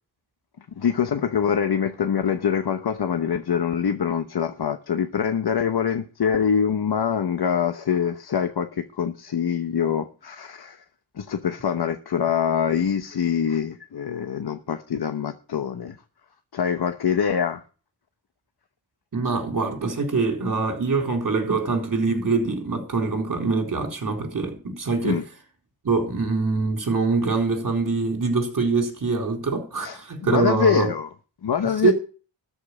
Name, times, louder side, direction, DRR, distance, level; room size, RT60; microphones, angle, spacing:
voice 1, 0.8-10.8 11.1-16.0 16.5-17.6 25.0-25.2 29.8-30.0 30.3-31.1 31.4-31.9, left 7 dB, 55° left, 1.0 m, -24 dB
voice 2, 19.1-25.2 25.8-30.9 31.8-31.9, right 4 dB, 40° right, 4.0 m, -24 dB
13.0 x 5.5 x 8.6 m
wide cardioid pair, 105°, 48 cm